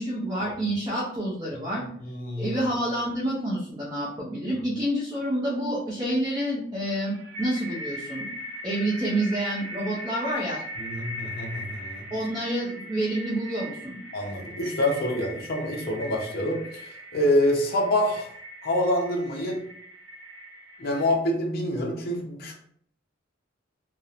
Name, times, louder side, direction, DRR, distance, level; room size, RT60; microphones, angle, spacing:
voice 1, 0.0-1.8 2.4-8.3 8.6-10.6 12.1-14.0, right 1 dB, 20° right, -6 dB, 0.5 m, -28 dB
voice 2, 2.0-2.5 10.8-12.0 14.1-16.8 17.1-18.3 18.6-19.6 20.8-22.5, left 1 dB, 50° left, 0 dB, 0.5 m, -26 dB
sound 1, 6.8-21.1, equal, 75° right, 0.8 m, -40 dB
2.8 x 2.0 x 2.4 m, 0.63 s
head